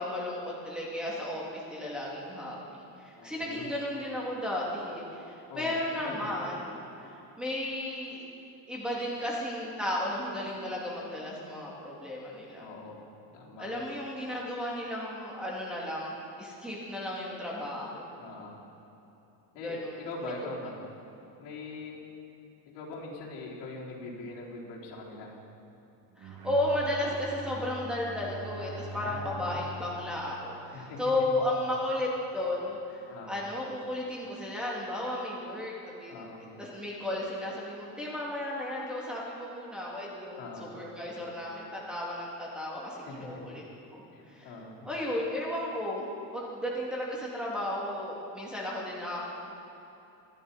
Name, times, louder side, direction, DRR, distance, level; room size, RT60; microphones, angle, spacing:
voice 1, 0.0-6.8 7.1-8.2 8.7-12.7 13.6-18.0 19.6-19.9 26.2-35.7 36.0-36.2 36.6-43.6 43.9-44.5 44.8-46.0 46.3-49.3, left 1 dB, ahead, -5 dB, 2.4 m, -34 dB
voice 2, 3.2-3.7 5.5-6.3 12.6-13.0 13.3-13.7 18.2-18.6 19.5-20.8 21.4-22.0 22.7-25.4 28.9-29.5 30.7-31.4 33.1-33.4 36.1-36.5 40.4-40.7 43.1-43.6 44.1-44.9, left 3 dB, 75° left, -5 dB, 3.8 m, -42 dB
Bowed string instrument, 26.1-31.4, right 2 dB, 55° right, 1.4 m, -43 dB
25.0 x 10.5 x 4.2 m, 2.9 s
cardioid pair, 165°, 42 cm